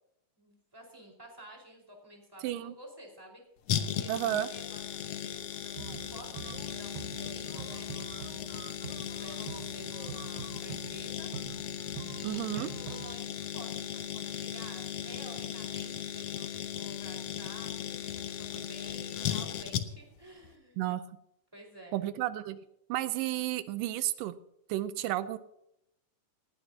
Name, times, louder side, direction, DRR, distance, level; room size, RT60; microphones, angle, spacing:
voice 1, 0.4-3.4 4.0-8.4 9.1-11.3 12.1-20.9 21.5-22.0, right 1 dB, 5° right, 0 dB, 4.5 m, -51 dB
voice 2, 2.4-2.7 4.1-4.5 12.2-12.7 20.8-21.0 21.9-22.6 22.9-24.3 24.7-25.4, right 14 dB, 85° right, 12 dB, 2.4 m, -32 dB
sound 1, 3.7-20.2 20.4-20.5, left 9 dB, 65° left, 1.9 m, -37 dB
sound 2, 4.1-11.1, left 3 dB, 40° left, 4.8 m, -57 dB
sound 3, 5.8-13.2, right 9 dB, 70° right, 2.2 m, -45 dB
19.0 x 18.0 x 2.8 m, 0.78 s
omnidirectional pair, 3.8 m